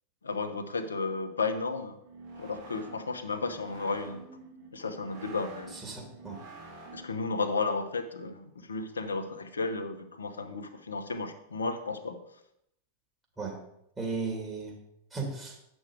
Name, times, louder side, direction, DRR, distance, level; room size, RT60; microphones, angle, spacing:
voice 1, 0.2-2.0 2.4-4.2 4.7-5.8 6.9-12.2, left 3 dB, 75° left, 8 dB, 0.9 m, -33 dB
sound 1, 2.0-7.3, right 3 dB, 55° right, 2.6 m, -48 dB
voice 2, 5.7-6.4 13.4-13.6 14.0-14.7 15.1-15.5, right 4 dB, 15° right, -1 dB, 2.4 m, -35 dB
8.6 x 6.2 x 4.8 m, 0.77 s
figure-of-eight pair, 90°, 0 cm